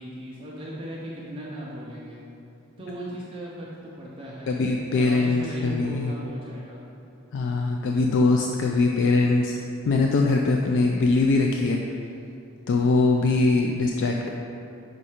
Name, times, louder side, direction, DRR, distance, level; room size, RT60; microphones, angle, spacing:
voice 1, 0.0-2.2 2.8-4.6 4.9-6.8, equal, 25° right, -6 dB, 0.7 m, -37 dB
voice 2, 4.5-6.1 7.3-9.6 9.9-11.8 12.7-14.3, left 3 dB, 60° left, 1 dB, 0.3 m, -22 dB
5.4 x 4.2 x 4.9 m, 2.7 s
head